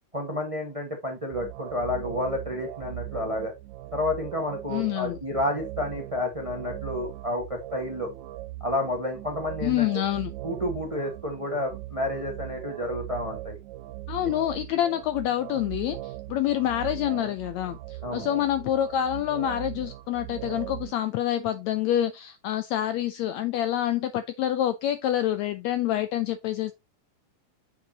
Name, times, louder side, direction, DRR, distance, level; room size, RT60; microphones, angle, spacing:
voice 1, 0.1-3.5 3.9-8.1 8.6-9.9 10.4-13.6 18.0-18.3, left 1 dB, 50° right, 0.4 m, -30 dB
sound 1, 1.3-20.9, right 16 dB, 80° right, 2.0 m, -39 dB
voice 2, 4.7-5.2 9.6-10.3 14.1-26.7, left 12 dB, 85° left, 1.6 m, -27 dB
8.4 x 5.9 x 2.8 m
omnidirectional pair, 3.7 m